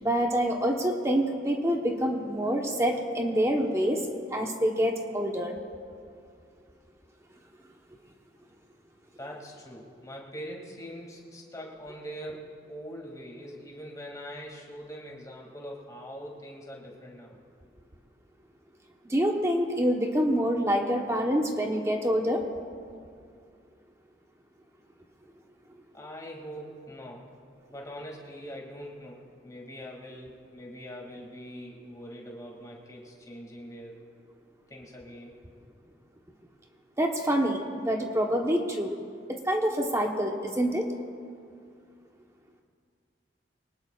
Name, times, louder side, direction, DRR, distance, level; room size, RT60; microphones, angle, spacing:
voice 1, 0.0-4.0 4.3-5.5 19.1-22.4 37.0-38.9 39.3-40.9, equal, 15° right, 1 dB, 1.0 m, -26 dB
voice 2, 9.2-17.4 25.9-27.3 27.7-34.0 34.7-35.4, equal, 20° left, -2 dB, 2.3 m, -43 dB
24.0 x 19.0 x 2.4 m, 2.3 s
head